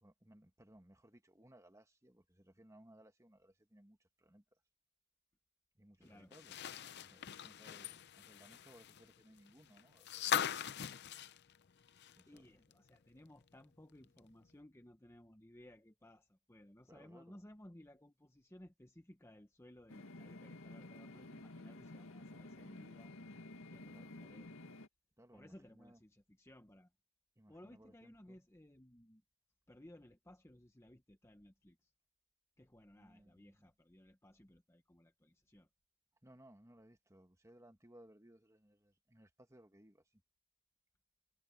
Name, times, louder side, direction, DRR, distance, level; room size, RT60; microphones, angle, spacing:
voice 1, 0.0-4.4 5.8-6.5 7.0-10.5 10.8-11.0 12.2-12.4 16.9-17.4 23.9-24.4 25.2-26.0 27.4-28.4 32.9-33.7 36.2-40.2, right 1 dB, 15° right, 1.7 m, -63 dB
voice 2, 6.0-6.3 12.3-23.1 23.7-24.7 25.3-26.9 27.5-29.2 29.7-31.9 32.6-35.7, left 1 dB, 10° left, 0.9 m, -60 dB
sound 1, 6.3-12.4 12.7-12.8 14.2-14.3, left 9 dB, 50° left, 0.6 m, -41 dB
sound 2, 19.9-24.9, left 2 dB, 70° left, 2.0 m, -52 dB
head